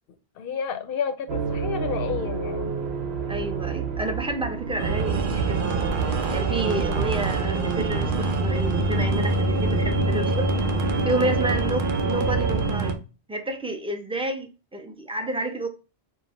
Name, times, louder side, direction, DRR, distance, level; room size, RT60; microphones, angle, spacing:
voice 1, 0.4-2.8, left 7 dB, 65° left, 0.7 m, -31 dB
sound 1, 1.3-7.6, right 5 dB, 80° right, 0.9 m, -31 dB
voice 2, 3.3-5.9 6.3-10.5 11.0-13.0 13.3-15.7, right 1 dB, 5° right, 0.4 m, -30 dB
sound 2, 4.8-12.9, right 3 dB, 55° right, 0.8 m, -24 dB
4.6 x 2.0 x 4.1 m
omnidirectional pair, 1.1 m